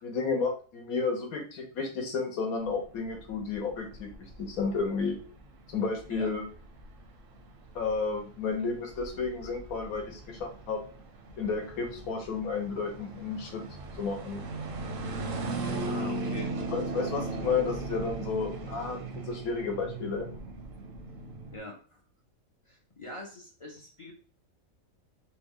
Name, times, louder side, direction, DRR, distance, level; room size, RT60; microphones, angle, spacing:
voice 1, 0.0-4.1 4.4-5.2 5.7-6.4 7.7-10.8 11.4-13.6 14.0-14.4 16.7-20.3, left 4 dB, 85° left, 2 dB, 1.3 m, -32 dB
sound 1, 2.6-21.6, right 2 dB, 60° right, 0.6 m, -38 dB
voice 2, 15.9-16.5 21.5-22.0 22.7-24.1, left 1 dB, 50° left, -1 dB, 0.4 m, -43 dB
3.1 x 2.2 x 3.6 m, 0.40 s
omnidirectional pair, 1.5 m